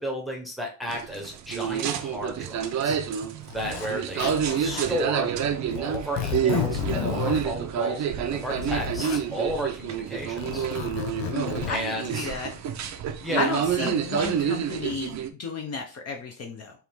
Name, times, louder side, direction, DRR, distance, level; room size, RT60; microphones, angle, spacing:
voice 1, 0.0-3.0 3.5-5.3 5.7-10.6 11.7-12.3 13.2-13.5 13.8-13.9, equal, ahead, 0 dB, 0.8 m, -33 dB
sound 1, 0.8-5.1 5.4-5.5 6.3-6.4 6.9-7.0, right 10 dB, 85° right, 0.8 m, -39 dB
sound 2, 0.9-15.3, right 8 dB, 45° right, 0.5 m, -28 dB
Zipper (clothing), 2.6-2.7 3.5-3.9 4.2-5.0 5.7-7.4 8.2-9.2 10.2-11.7, left 9 dB, 75° left, 0.9 m, -32 dB
voice 2, 11.3-12.5 13.4-16.7, left 4 dB, 40° left, 3 dB, 0.7 m, -32 dB
4.6 x 3.0 x 3.5 m, 0.34 s
cardioid pair, 175°, 41 cm